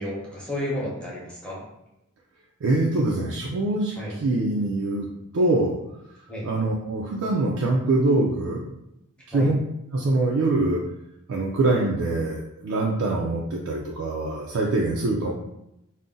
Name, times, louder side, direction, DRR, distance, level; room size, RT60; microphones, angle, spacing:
voice 1, 0.0-1.6 4.0-4.1 6.3-6.4 9.3-9.5, left 1 dB, 5° left, -6 dB, 0.9 m, -31 dB
voice 2, 2.6-5.1 5.3-5.8 6.4-8.6 9.3-9.6 9.9-10.8 11.3-15.3, right 2 dB, 65° right, -3 dB, 0.4 m, -24 dB
2.5 x 2.0 x 3.7 m, 0.83 s
head